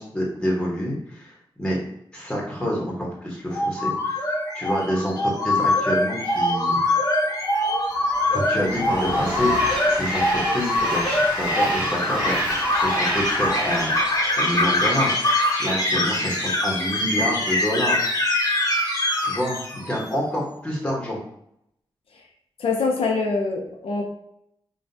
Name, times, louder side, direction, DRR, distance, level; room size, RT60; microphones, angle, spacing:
voice 1, 0.0-1.3 1.6-1.8 2.1-4.2 4.5-6.8 8.3-9.5 9.9-13.9 14.4-15.2 15.6-18.1 19.2-21.2, equal, 10° left, -3 dB, 1.1 m, -27 dB
sound 1, 3.5-20.1, left 1 dB, 40° left, 0.9 m, -23 dB
Train, 7.9-15.3, right 1 dB, 10° right, 1.3 m, -30 dB
voice 2, 22.6-24.0, left 4 dB, 80° left, 0 dB, 0.8 m, -24 dB
5.5 x 2.4 x 2.7 m, 0.75 s
wide cardioid pair, 165°, 9 cm